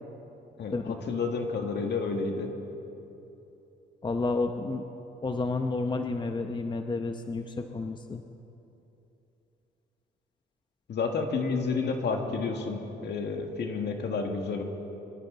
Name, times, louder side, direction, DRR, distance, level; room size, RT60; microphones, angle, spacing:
voice 1, 0.6-2.5 10.9-14.6, left 4 dB, 60° left, 3 dB, 2.0 m, -30 dB
voice 2, 4.0-4.8 5.2-8.2, left 3 dB, 25° left, 6 dB, 0.8 m, -30 dB
25.0 x 13.5 x 4.0 m, 2.9 s
cardioid pair, 90°, 20 cm